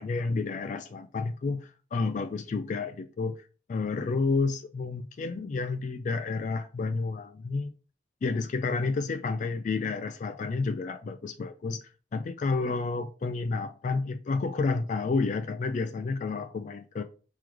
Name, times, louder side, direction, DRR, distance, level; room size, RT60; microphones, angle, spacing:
voice 1, 0.0-3.4 3.7-7.7 8.2-11.8 12.1-17.0, left 4 dB, 45° left, 0.3 m, -30 dB
4.7 x 3.7 x 3.0 m
head